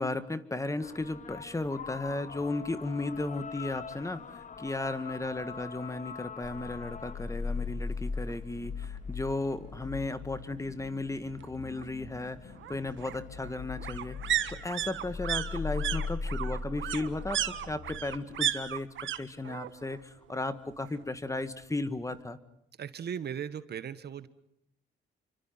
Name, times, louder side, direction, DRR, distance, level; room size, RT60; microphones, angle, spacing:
voice 1, 0.0-18.9 19.2-22.4, left 2 dB, 15° left, 12 dB, 1.8 m, -35 dB
sound 1, 0.8-18.5, left 6 dB, 40° left, 1.3 m, -48 dB
sound 2, 6.4-19.1, left 4 dB, 65° left, 3.2 m, -39 dB
sound 3, 8.3-8.4 8.8-8.9 9.1-10.1 11.4-19.2 19.4-20.0 20.3-21.3 21.6-21.7, right 11 dB, 75° right, 1.6 m, -35 dB
voice 2, 22.8-24.3, right 8 dB, 55° right, 13 dB, 1.4 m, -37 dB
28.5 x 25.0 x 5.8 m, 0.76 s
cardioid pair, 90°, 20 cm